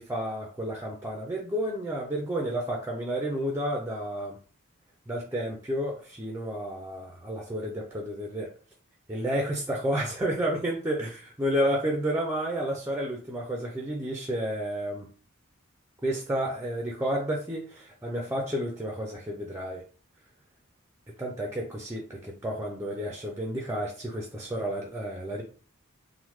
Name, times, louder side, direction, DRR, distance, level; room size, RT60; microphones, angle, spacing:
voice 1, 0.0-4.4 5.1-8.5 9.1-15.1 16.0-19.8 21.2-25.4, equal, 10° right, 0 dB, 0.3 m, -31 dB
3.1 x 2.1 x 3.0 m, 0.41 s
head